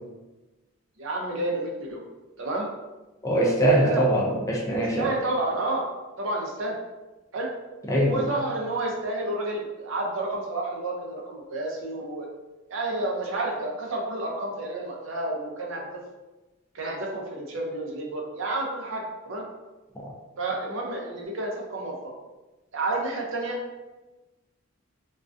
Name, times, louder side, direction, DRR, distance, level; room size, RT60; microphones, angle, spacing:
voice 1, 1.0-2.0 2.4-2.7 3.8-4.0 4.8-5.8 6.2-6.8 7.3-7.5 8.0-12.3 12.7-16.0 16.7-19.5 20.4-21.9 22.7-23.6, right 2 dB, 65° right, -1 dB, 0.5 m, -30 dB
voice 2, 3.2-5.1 7.9-8.3, right 1 dB, 15° left, -3 dB, 0.3 m, -22 dB
2.3 x 2.2 x 2.4 m, 1.1 s
head